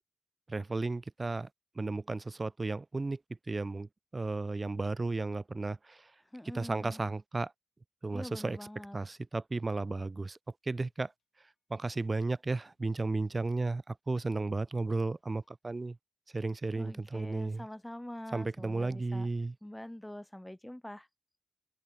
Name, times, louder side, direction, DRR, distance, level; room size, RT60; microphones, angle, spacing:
voice 1, 0.5-1.5 1.8-6.1 6.5-7.5 8.0-8.6 8.9-10.4 10.6-11.1 11.7-16.0 16.3-17.7 18.3-19.6, right 3 dB, 30° right, 0.4 m, -34 dB
voice 2, 6.3-7.0 8.1-9.0 16.7-19.3 19.6-21.1, left 1 dB, 10° left, 0.9 m, -45 dB
sound 1, 8.9-9.8 10.2-15.8, left 6 dB, 80° left, 6.1 m, -79 dB
wide cardioid pair, 95°, 0 cm